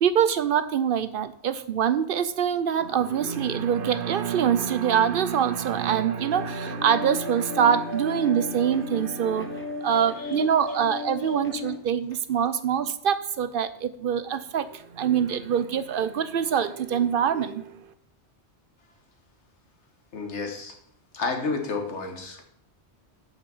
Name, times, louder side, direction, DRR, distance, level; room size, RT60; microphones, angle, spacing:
voice 1, 0.0-17.7, right 8 dB, 60° right, 13 dB, 0.6 m, -24 dB
sound 1, 6.3-11.8, left 2 dB, 15° left, 0.7 m, -35 dB
voice 2, 20.1-20.7 21.1-22.4, left 4 dB, 85° left, 3 dB, 1.6 m, -31 dB
6.6 x 5.9 x 7.0 m, 0.69 s
omnidirectional pair, 1.2 m